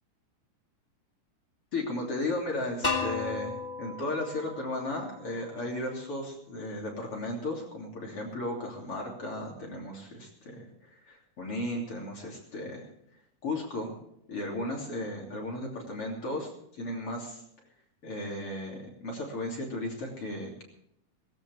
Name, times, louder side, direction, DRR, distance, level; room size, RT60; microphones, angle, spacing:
voice 1, 1.7-12.9 13.4-14.0 14.3-17.4 18.0-20.6, left 1 dB, 45° left, -1 dB, 3.8 m, -35 dB
sound 1, 2.8-5.7, left 3 dB, 15° left, 2.4 m, -35 dB
18.0 x 18.0 x 3.5 m, 0.72 s
omnidirectional pair, 3.7 m